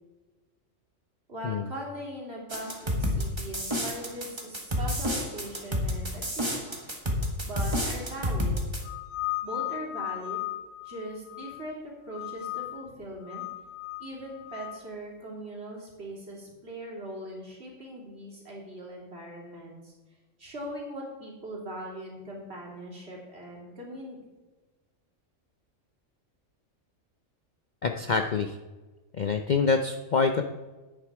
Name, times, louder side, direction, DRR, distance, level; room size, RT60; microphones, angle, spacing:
voice 1, 1.3-6.8 7.4-8.6 9.4-10.4 10.8-13.4 14.0-19.9 20.4-24.2, right 1 dB, 55° right, -3 dB, 3.0 m, -40 dB
sound 1, 2.5-8.8, equal, 20° right, 1.5 m, -29 dB
sound 2, 8.8-11.7 12.1-12.9 13.2-14.8, left 17 dB, 85° left, 1.2 m, -36 dB
voice 2, 27.8-28.6 29.1-30.4, left 5 dB, 50° left, 6 dB, 0.6 m, -26 dB
10.0 x 8.2 x 4.8 m, 1.2 s
omnidirectional pair, 1.3 m